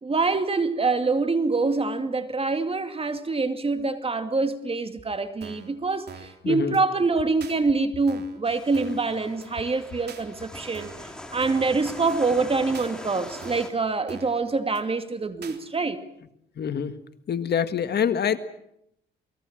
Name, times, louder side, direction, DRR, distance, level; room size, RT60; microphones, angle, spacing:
voice 1, 0.0-16.0, right 3 dB, 30° right, 2.4 m, -25 dB
sound 1, 5.4-5.7 6.1-6.4 6.7-6.8 7.4-7.6 8.1-8.4 8.7-9.1 9.4-9.5 10.1-10.2 10.7-11.1 11.4-11.7 12.1-12.2 12.7-12.9 13.4-13.7 14.1-14.4 14.7-14.8 15.4-15.6, right 6 dB, 55° right, 3.4 m, -44 dB
sound 2, 8.5-13.7, left 1 dB, 5° left, 4.6 m, -41 dB
voice 2, 16.6-16.9 17.3-18.4, left 8 dB, 55° left, 1.8 m, -25 dB
28.5 x 20.5 x 7.5 m
cardioid pair, 90°, 20 cm